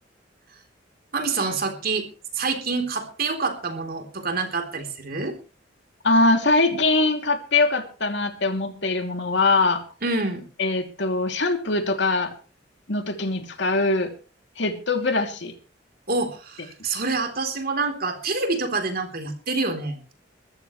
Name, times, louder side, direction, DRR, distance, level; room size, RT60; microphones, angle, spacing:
voice 1, 1.1-2.1 2.3-5.3 10.0-10.4 16.1-20.1, right 3 dB, 55° right, 5 dB, 3.6 m, -27 dB
voice 2, 6.0-9.8 10.6-12.3 12.9-14.1 14.6-15.5, left 3 dB, 70° left, 5 dB, 2.8 m, -22 dB
22.0 x 14.0 x 3.2 m, 0.35 s
head